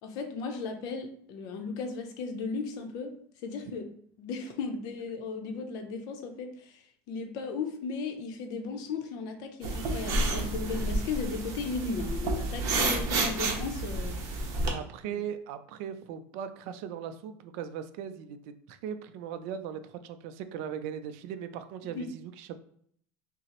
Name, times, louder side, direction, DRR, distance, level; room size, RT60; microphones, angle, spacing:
voice 1, 0.0-3.2 3.4-3.8 4.2-14.5 21.8-22.1, left 4 dB, 50° left, 6 dB, 0.6 m, -36 dB
sound 1, 9.6-14.7, right 2 dB, 40° right, 0.9 m, -30 dB
voice 2, 14.5-22.6, right 8 dB, 60° right, 10 dB, 0.4 m, -39 dB
5.5 x 2.0 x 2.9 m, 0.64 s
cardioid pair, 160°, 8 cm